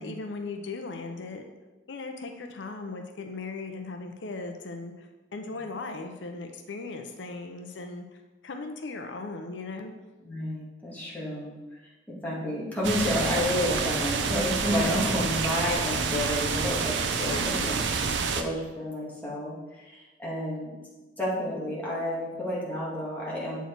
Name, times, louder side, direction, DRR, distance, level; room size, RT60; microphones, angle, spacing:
voice 1, 0.0-1.4 1.9-9.9 17.3-17.6, left 3 dB, 85° left, 5 dB, 0.7 m, -38 dB
voice 2, 10.2-11.6 12.2-19.5 19.8-20.7 21.2-23.6, left 1 dB, 10° left, -7 dB, 2.0 m, -30 dB
sound 1, 12.8-18.4, right 5 dB, 80° right, 0.6 m, -28 dB
8.0 x 4.6 x 4.6 m, 1.2 s
head